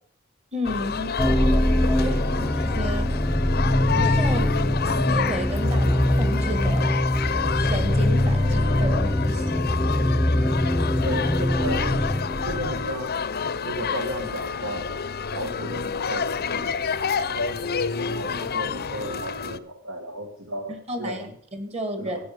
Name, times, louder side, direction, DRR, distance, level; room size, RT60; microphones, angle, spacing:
voice 1, 0.5-1.2 2.0-3.1 3.9-4.5 5.0-7.0 7.6-9.7 20.9-22.2, equal, 30° right, 8 dB, 2.0 m, -32 dB
sound 1, 0.6-19.6, left 6 dB, 50° left, 0.7 m, -29 dB
sound 2, 1.2-13.1, left 1 dB, 5° left, 0.8 m, -22 dB
voice 2, 11.0-12.1 12.4-13.2 13.6-14.9 15.3-21.3 22.0-22.3, equal, 70° right, 5 dB, 1.7 m, -34 dB
13.5 x 8.8 x 6.7 m, 0.62 s
head